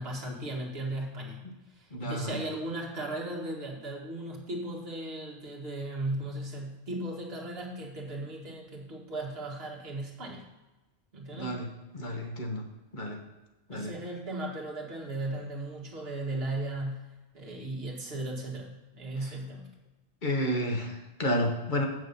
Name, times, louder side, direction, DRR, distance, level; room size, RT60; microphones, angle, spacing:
voice 1, 0.0-1.4 1.7-10.4 11.1-11.6 13.7-17.1 17.3-18.7 18.9-19.7, right 1 dB, 50° right, -1 dB, 2.0 m, -36 dB
voice 2, 1.9-2.4 11.4-11.7 11.9-12.6 12.9-13.2 13.7-13.9 20.2-21.9, equal, 40° left, 2 dB, 1.4 m, -30 dB
8.5 x 6.4 x 5.4 m, 1.1 s
omnidirectional pair, 1.3 m